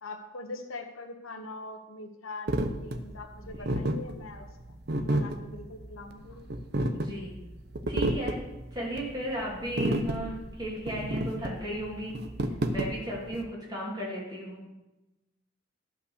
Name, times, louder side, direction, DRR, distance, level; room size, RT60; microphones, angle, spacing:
voice 1, 0.0-4.5 5.0-6.4, left 2 dB, 85° left, 5 dB, 1.2 m, -42 dB
sound 1, 2.5-13.4, right 1 dB, 50° right, 0.7 m, -31 dB
voice 2, 6.9-7.3 7.9-8.4 8.7-12.2 12.7-14.6, right 1 dB, 20° right, -4 dB, 3.0 m, -35 dB
12.0 x 5.6 x 6.5 m, 1.0 s
head